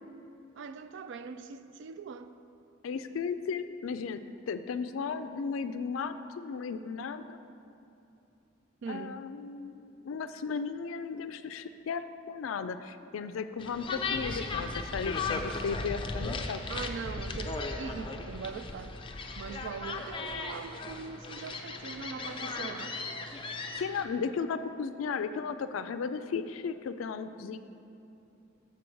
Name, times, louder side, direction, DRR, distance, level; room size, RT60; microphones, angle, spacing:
voice 1, 0.5-2.3 8.8-9.2 16.7-19.0 19.3-23.0, right 5 dB, 65° right, 0.3 m, -41 dB
voice 2, 2.8-7.4 8.9-16.6 23.8-27.6, left 5 dB, 85° left, 0.4 m, -35 dB
sound 1, 13.6-24.0, left 3 dB, 25° left, 0.4 m, -36 dB
6.8 x 4.6 x 6.3 m
head